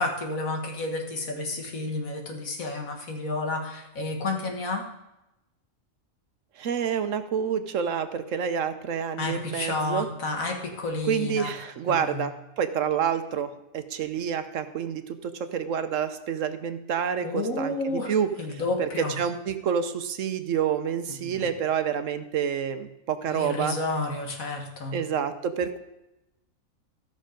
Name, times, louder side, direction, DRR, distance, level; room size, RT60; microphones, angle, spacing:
voice 1, 0.0-4.8 9.2-11.5 11.9-12.3 17.2-18.1 18.4-19.2 21.1-21.5 23.3-25.0, left 2 dB, 75° left, 2 dB, 1.9 m, -31 dB
voice 2, 6.6-10.1 11.1-17.7 18.1-18.3 18.8-18.9 19.2-23.7 24.9-25.8, right 8 dB, 65° right, 9 dB, 1.1 m, -28 dB
14.0 x 6.4 x 5.1 m, 0.93 s
omnidirectional pair, 1.5 m